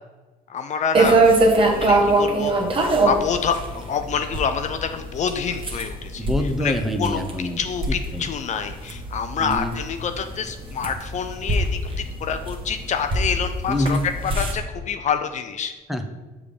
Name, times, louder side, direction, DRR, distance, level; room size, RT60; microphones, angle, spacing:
voice 1, 0.5-1.2 1.7-2.5 2.8-6.3 6.6-14.0 14.4-15.7, left 6 dB, 45° left, 8 dB, 0.4 m, -27 dB
sound 1, 0.9-14.5, right 2 dB, 30° right, 1.2 m, -23 dB
voice 2, 6.2-7.6 7.9-8.3 9.4-9.7 13.7-14.0 15.9-16.2, left 1 dB, ahead, 5 dB, 0.6 m, -25 dB
6.6 x 3.5 x 5.2 m, 1.3 s
cardioid pair, 110°, 17 cm